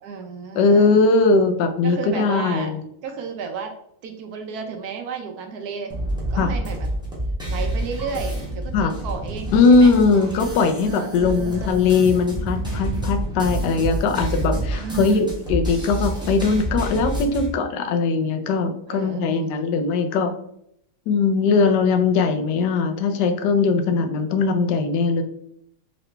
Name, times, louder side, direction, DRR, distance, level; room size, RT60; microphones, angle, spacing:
voice 1, 0.0-1.0 1.8-2.7 3.0-3.7 4.0-5.9 6.3-6.9 7.5-9.9 10.9-11.8 14.8-15.3 18.9-19.7, right 6 dB, 70° right, 4 dB, 1.0 m, -33 dB
voice 2, 0.5-2.8 6.4-6.5 8.7-8.9 9.5-20.3 21.1-25.2, left 4 dB, 80° left, 6 dB, 1.2 m, -20 dB
sound 1, 5.9-17.5, right 1 dB, 5° right, 0.7 m, -28 dB
3.8 x 3.0 x 3.2 m, 0.73 s
omnidirectional pair, 1.8 m